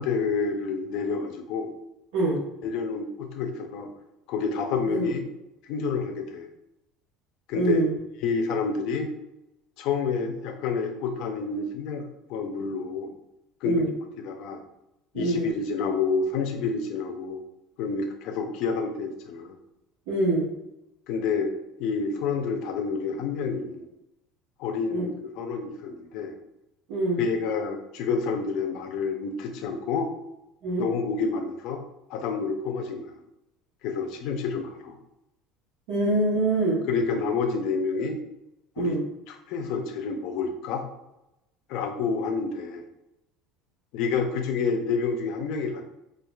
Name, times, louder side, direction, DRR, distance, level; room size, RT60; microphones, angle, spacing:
voice 1, 0.0-1.7 2.6-3.9 4.3-5.3 5.6-6.5 7.5-7.8 8.2-9.1 9.8-13.1 13.6-14.6 15.1-17.4 17.8-19.6 21.1-21.5 21.8-23.9 24.6-25.1 25.4-26.3 27.2-30.1 30.8-31.8 32.1-33.1 33.8-35.0 36.9-38.2 38.8-39.0 39.3-40.8 41.7-42.8 43.9-45.8, left 5 dB, 55° left, 4 dB, 0.5 m, -28 dB
voice 2, 7.5-8.0 13.6-13.9 15.1-15.5 20.1-20.5 24.9-25.0 26.9-27.2 30.6-30.9 35.9-36.8 38.8-39.0, right 2 dB, 75° right, -8 dB, 1.0 m, -24 dB
4.5 x 2.4 x 2.3 m, 0.90 s
cardioid pair, 165°, 0 cm